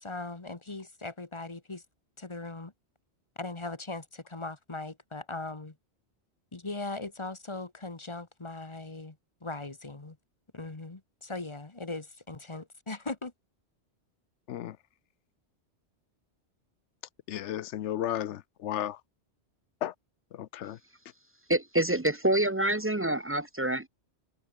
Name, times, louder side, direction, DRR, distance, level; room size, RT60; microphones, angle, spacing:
voice 1, 0.0-1.8 2.2-2.7 3.4-5.7 6.5-9.2 9.4-10.2 10.5-13.3, left 3 dB, 25° left, 1.5 m, -39 dB
voice 2, 17.3-19.0 19.8-19.9 20.3-20.8, left 12 dB, 85° left, 1.0 m, -34 dB
voice 3, 21.5-23.9, right 1 dB, 20° right, 0.4 m, -27 dB
omnidirectional pair, 1.2 m